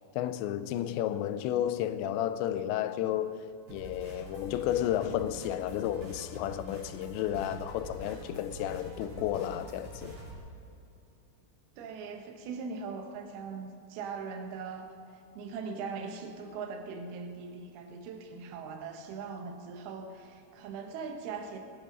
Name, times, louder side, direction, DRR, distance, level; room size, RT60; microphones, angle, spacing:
voice 1, 0.2-10.2, left 11 dB, 85° left, 2.8 m, -32 dB
sound 1, 3.7-10.3, right 1 dB, 45° right, 4.4 m, -45 dB
voice 2, 11.8-14.9 15.3-21.6, right 5 dB, 70° right, 2.9 m, -40 dB
21.5 x 9.3 x 5.3 m
omnidirectional pair, 5.1 m